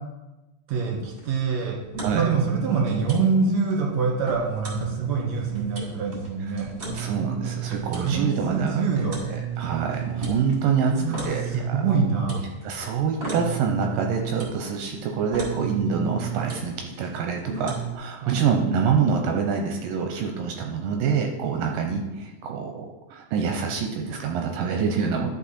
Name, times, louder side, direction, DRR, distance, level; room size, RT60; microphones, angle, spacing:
voice 1, 0.7-1.8 2.1-6.7 7.9-9.2 10.9-12.5 18.2-18.4, right 5 dB, 55° right, -2 dB, 2.8 m, -25 dB
sound 1, 0.9-18.0, right 7 dB, 35° right, 3.0 m, -34 dB
voice 2, 6.9-10.9 11.2-11.8 12.6-25.3, right 6 dB, 80° right, 2 dB, 2.4 m, -26 dB
11.0 x 5.7 x 4.2 m, 1.0 s
omnidirectional pair, 4.1 m